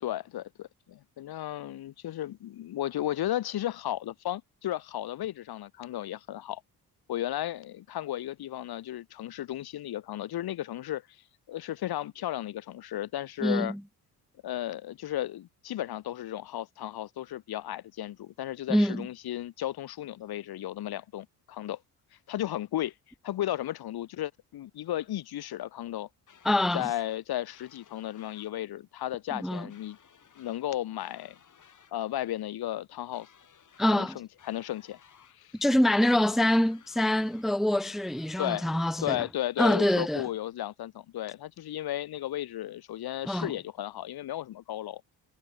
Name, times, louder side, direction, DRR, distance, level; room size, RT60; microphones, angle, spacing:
voice 1, 0.0-6.6 7.1-11.0 11.5-13.7 14.4-21.8 22.3-22.9 23.2-26.1 26.7-30.0 30.4-31.4 31.9-33.3 33.9-35.0 35.3-35.6 38.4-38.7 39.0-45.0, left 13 dB, 70° left, 1.9 m, -34 dB
voice 2, 13.4-13.8 18.7-19.1 26.4-26.8 29.4-29.7 33.8-34.2 35.6-39.2 39.6-40.2 43.3-43.5, left 1 dB, ahead, 0.6 m, -25 dB
sound 1, 26.3-27.2 27.5-28.5 29.7-30.7 31.0-31.9 33.1-34.1 34.4-35.4 36.5-37.5 37.8-38.8, left 8 dB, 50° left, 6.8 m, -58 dB
cardioid pair, 90°, 38 cm